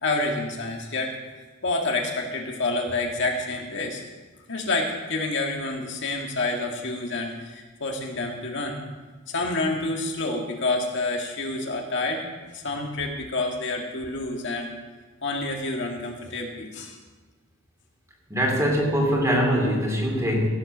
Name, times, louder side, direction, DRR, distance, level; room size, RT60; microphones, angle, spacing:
voice 1, 0.0-1.1 1.6-4.0 4.5-8.8 9.3-12.2 12.5-14.7 15.2-17.0, left 2 dB, 60° left, 1 dB, 2.0 m, -28 dB
voice 2, 18.3-20.5, equal, 15° right, 0 dB, 2.7 m, -22 dB
16.5 x 8.0 x 6.2 m, 1.3 s
head